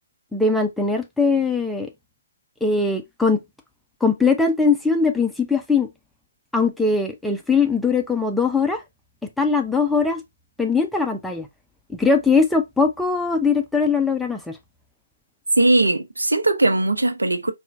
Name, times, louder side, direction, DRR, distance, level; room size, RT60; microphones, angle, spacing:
voice 1, 0.3-1.9 2.6-3.4 4.0-5.9 6.5-8.8 9.4-10.2 10.6-11.5 11.9-14.6, left 4 dB, ahead, 0.4 m, -20 dB
voice 2, 15.6-17.5, right 2 dB, 85° right, 0.7 m, -19 dB
4.2 x 2.3 x 2.5 m
figure-of-eight pair, 145°, 0 cm